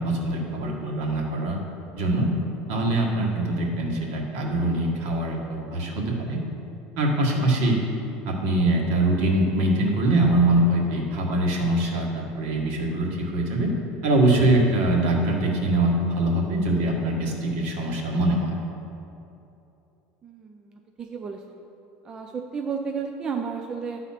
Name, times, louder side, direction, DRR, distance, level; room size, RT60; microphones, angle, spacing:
voice 1, 0.0-1.6 1.9-2.3 2.7-6.4 7.0-7.8 8.3-13.7 14.0-18.5, right 1 dB, 60° right, -1 dB, 1.5 m, -23 dB
voice 2, 20.2-21.6 22.0-24.0, right 5 dB, 20° right, 3 dB, 0.3 m, -33 dB
11.0 x 4.1 x 5.7 m, 2.8 s
cardioid pair, 170°, 4 cm